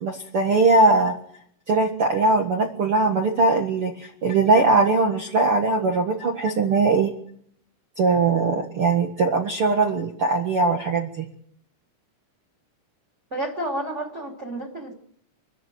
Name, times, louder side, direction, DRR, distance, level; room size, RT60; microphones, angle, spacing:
voice 1, 0.0-1.1 1.7-7.1 8.0-11.3, right 3 dB, 80° right, 3 dB, 1.2 m, -20 dB
voice 2, 13.3-14.9, right 1 dB, 20° right, 2 dB, 2.5 m, -30 dB
25.5 x 13.0 x 9.3 m, 0.66 s
omnidirectional pair, 5.5 m